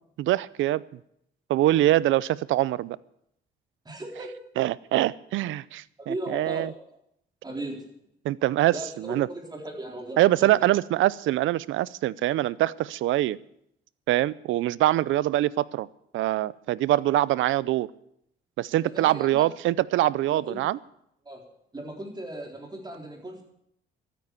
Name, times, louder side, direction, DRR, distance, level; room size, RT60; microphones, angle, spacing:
voice 1, 0.2-0.8 1.5-3.0 4.6-6.7 8.2-9.3 10.2-13.4 14.1-15.9 16.1-17.9 18.6-20.8, right 15 dB, 80° right, 21 dB, 0.5 m, -24 dB
voice 2, 3.9-4.4 6.0-7.0 7.4-7.9 8.7-10.7 18.8-19.5 20.2-20.6 21.2-21.4 21.7-23.4, right 1 dB, 20° right, 1 dB, 3.8 m, -37 dB
13.0 x 9.3 x 8.2 m, 0.75 s
cardioid pair, 90°, 20 cm